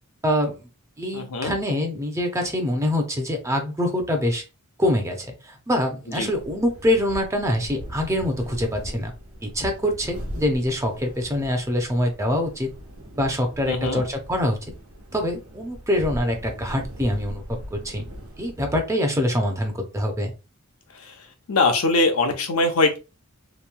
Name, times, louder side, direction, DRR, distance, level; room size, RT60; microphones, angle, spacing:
voice 1, 0.2-0.6 1.0-4.4 4.8-9.1 9.4-12.7 13.2-14.6 15.1-17.4 17.7-18.1 18.4-20.3, left 1 dB, 15° right, 4 dB, 0.6 m, -24 dB
voice 2, 1.1-1.5 6.1-6.3 13.7-14.0 20.9-21.2 21.5-23.0, left 3 dB, 80° left, 5 dB, 0.7 m, -22 dB
sound 1, 6.1-18.9, equal, 80° right, 1.1 m, -39 dB
3.0 x 2.7 x 2.2 m, 0.29 s
head